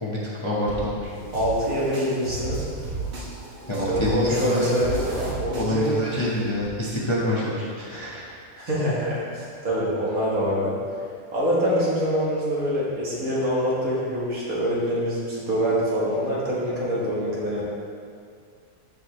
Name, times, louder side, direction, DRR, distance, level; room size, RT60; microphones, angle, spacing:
voice 1, 0.0-1.1 3.7-4.6 5.6-8.2, left 1 dB, 20° left, -6 dB, 1.0 m, -26 dB
sound 1, 0.7-6.7, right 3 dB, 45° right, 1.4 m, -34 dB
voice 2, 1.3-2.6 3.9-5.0 5.4-5.9 8.6-10.7 11.3-17.6, equal, 65° right, -7 dB, 2.3 m, -25 dB
13.5 x 4.9 x 3.2 m, 2.3 s
omnidirectional pair, 1.6 m